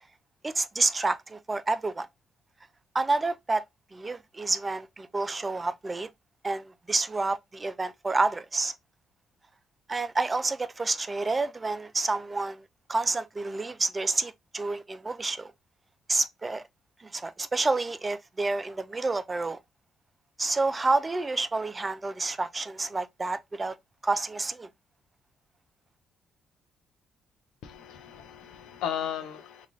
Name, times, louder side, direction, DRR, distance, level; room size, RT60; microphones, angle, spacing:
voice 1, 0.4-2.1 2.9-3.6 3.9-6.1 6.4-8.7 9.9-12.6 12.9-15.5 16.1-16.6 17.0-19.6 20.4-23.8 24.0-24.7, right 3 dB, 25° right, 0.4 m, -29 dB
voice 2, 27.6-29.7, left 9 dB, 85° left, 0.6 m, -35 dB
3.1 x 2.4 x 3.8 m
cardioid pair, 90°, 0 cm